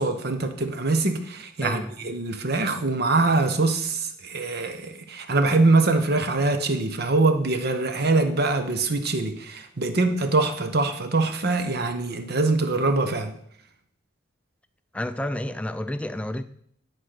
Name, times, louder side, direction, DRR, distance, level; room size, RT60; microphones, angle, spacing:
voice 1, 0.0-13.3, right 3 dB, 55° right, 8 dB, 1.0 m, -23 dB
voice 2, 1.6-1.9 14.9-16.4, left 1 dB, 5° left, 11 dB, 0.4 m, -30 dB
9.7 x 4.4 x 6.6 m, 0.67 s
head